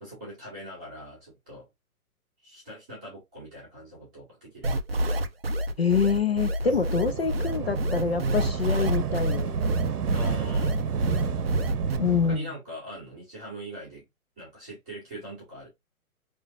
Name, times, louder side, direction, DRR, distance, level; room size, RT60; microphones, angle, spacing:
voice 1, 0.0-1.7 2.4-4.7 10.1-10.8 12.3-14.1 14.4-15.7, right 1 dB, 5° right, 0.8 m, -42 dB
sound 1, 4.6-12.0, equal, 45° right, 0.5 m, -28 dB
voice 2, 5.8-9.6 12.0-12.5, left 5 dB, 45° left, 0.5 m, -26 dB
sound 2, 6.6-12.4, right 6 dB, 90° right, 1.0 m, -30 dB
5.3 x 3.1 x 2.5 m
hypercardioid pair, 180°, 44 cm